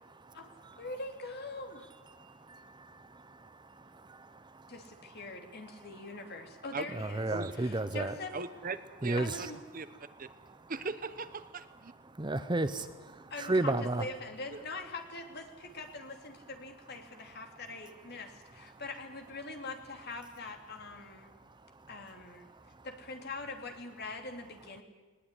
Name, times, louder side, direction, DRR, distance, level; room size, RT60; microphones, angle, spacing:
voice 1, 0.1-0.8 2.1-4.7 5.2-5.3 6.9-8.1 9.0-9.5 10.4-10.7 12.1-14.1 18.7-18.8 21.2-21.9 22.5-22.9, right 2 dB, 20° right, 12 dB, 0.8 m, -35 dB
voice 2, 0.8-1.9 4.7-7.3 7.6-8.3 9.2-9.6 13.3-21.3 21.9-22.5 22.8-24.8, left 3 dB, 50° left, 4 dB, 2.9 m, -43 dB
voice 3, 8.3-9.5 9.7-9.9 10.2-10.3 10.7-11.9 14.5-14.6, right 4 dB, 40° right, 12 dB, 1.0 m, -39 dB
20.0 x 20.0 x 10.0 m, 1.3 s
head